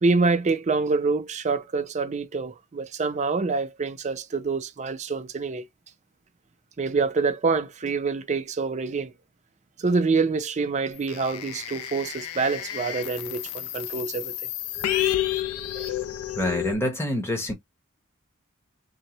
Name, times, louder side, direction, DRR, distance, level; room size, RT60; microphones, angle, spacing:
voice 1, 0.0-5.6 6.8-9.1 9.8-14.4 15.7-15.9, right 4 dB, 30° right, 0.4 m, -26 dB
sound 1, 11.1-16.8, left 13 dB, 70° left, 0.3 m, -30 dB
voice 2, 16.4-17.5, left 1 dB, 10° left, 0.8 m, -26 dB
2.7 x 2.0 x 2.9 m
head